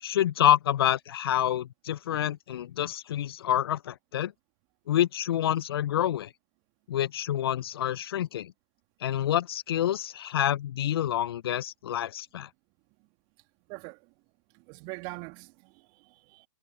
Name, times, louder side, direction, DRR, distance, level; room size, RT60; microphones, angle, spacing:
voice 1, 0.0-4.3 4.9-6.3 6.9-8.5 9.0-12.5, left 11 dB, 50° left, 0.7 m, -27 dB
voice 2, 13.7-14.1 14.5-16.5, right 29 dB, 30° right, 2.8 m, -43 dB
figure-of-eight pair, 130°, 17 cm